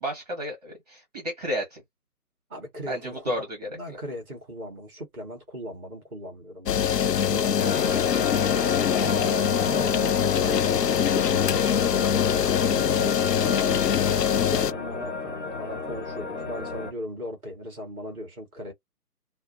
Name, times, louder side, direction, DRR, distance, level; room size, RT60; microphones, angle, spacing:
voice 1, 0.0-1.8 2.9-3.7 9.0-9.3, equal, 25° right, 0.9 m, -32 dB
voice 2, 2.5-3.3 3.7-8.3 8.9-18.7, equal, ahead, 0.7 m, -38 dB
sound 1, 6.7-14.7, left 9 dB, 90° left, 0.5 m, -23 dB
sound 2, 7.6-16.9, left 4 dB, 45° left, 0.8 m, -32 dB
2.6 x 2.0 x 2.6 m
figure-of-eight pair, 150°, 47 cm